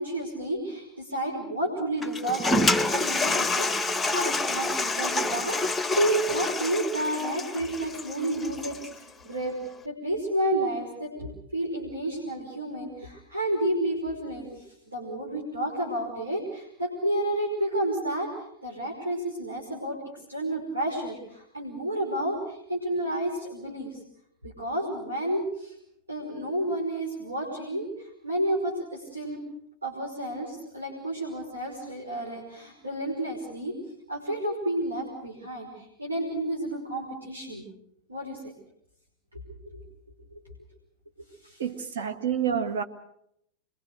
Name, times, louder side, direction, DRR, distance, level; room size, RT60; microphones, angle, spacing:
voice 1, 0.0-9.6 9.8-14.6 14.9-18.3 18.6-20.0 20.3-24.0 24.4-25.7 26.1-29.4 29.8-33.7 34.1-37.7 38.1-38.4 39.5-39.8 41.4-41.6, right 1 dB, 80° right, 5.5 m, -31 dB
Toilet flush, 2.0-8.9, left 2 dB, 10° left, 0.9 m, -27 dB
voice 2, 41.6-42.8, right 8 dB, 60° right, 2.0 m, -28 dB
26.5 x 23.0 x 6.6 m
figure-of-eight pair, 90°, 0 cm